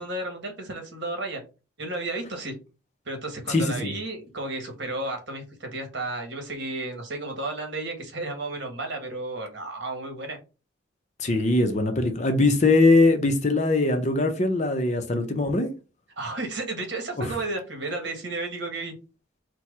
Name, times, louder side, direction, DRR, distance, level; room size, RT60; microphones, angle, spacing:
voice 1, 0.0-1.4 1.8-2.5 3.0-10.4 16.2-18.9, right 2 dB, 60° right, 1.4 m, -33 dB
voice 2, 3.5-3.9 11.2-15.7 17.2-17.3, left 2 dB, 35° left, 0.7 m, -21 dB
4.4 x 2.3 x 4.6 m
head